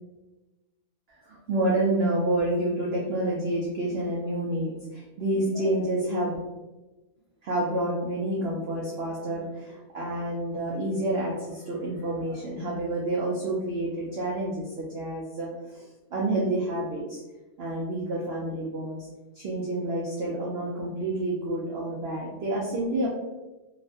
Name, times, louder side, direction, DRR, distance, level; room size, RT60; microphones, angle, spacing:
voice 1, 1.1-6.4 7.4-15.9 16.1-17.2 17.6-19.0 19.4-23.1, right 1 dB, 75° right, -4 dB, 0.5 m, -29 dB
3.0 x 2.1 x 2.6 m, 1.1 s
omnidirectional pair, 1.7 m